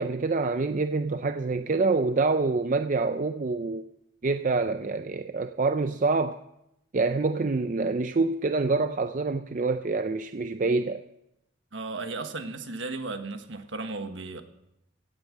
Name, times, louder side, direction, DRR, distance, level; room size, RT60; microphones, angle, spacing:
voice 1, 0.0-3.8 4.2-6.4 6.9-11.0, right 3 dB, 40° right, 0.4 m, -26 dB
voice 2, 11.7-14.4, right 3 dB, 65° right, 1.4 m, -35 dB
16.5 x 8.8 x 7.4 m
head